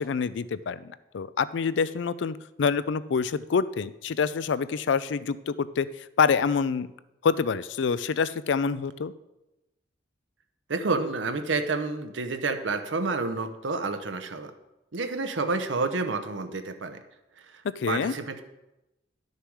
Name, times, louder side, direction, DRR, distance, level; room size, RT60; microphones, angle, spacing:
voice 1, 0.0-6.9 7.2-9.1 17.8-18.1, left 5 dB, 70° left, 16 dB, 0.4 m, -26 dB
voice 2, 10.7-14.5 14.9-17.0 17.5-17.6 17.9-18.4, right 3 dB, 80° right, 8 dB, 0.8 m, -29 dB
11.0 x 6.7 x 4.7 m, 0.96 s
head